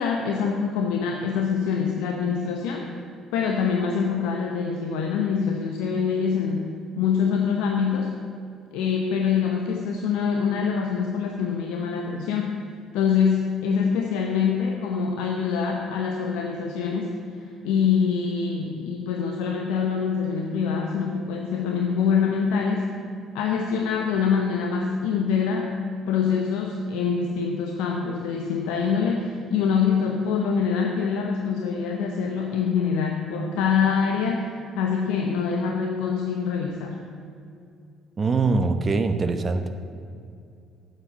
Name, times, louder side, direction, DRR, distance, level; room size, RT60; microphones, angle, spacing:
voice 1, 0.0-2.9 3.3-8.1 8.7-12.7 12.9-17.2 17.6-22.9 23.3-25.8 26.1-37.0, left 6 dB, 70° left, 2 dB, 0.9 m, -25 dB
voice 2, 38.2-39.7, right 3 dB, 35° right, 8 dB, 0.9 m, -23 dB
9.5 x 7.3 x 9.0 m, 2.4 s
hypercardioid pair, 50°, 0 cm